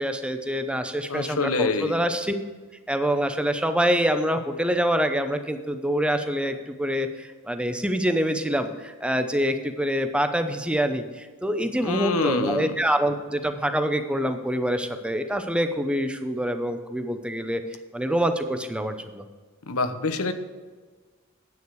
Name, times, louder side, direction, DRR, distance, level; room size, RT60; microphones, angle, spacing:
voice 1, 0.0-2.3 2.9-17.6 17.9-19.2, equal, 5° right, 7 dB, 0.8 m, -26 dB
voice 2, 1.1-2.0 11.8-12.7 19.7-20.3, left 3 dB, 90° left, 10 dB, 0.9 m, -26 dB
9.7 x 8.8 x 4.7 m, 1.4 s
head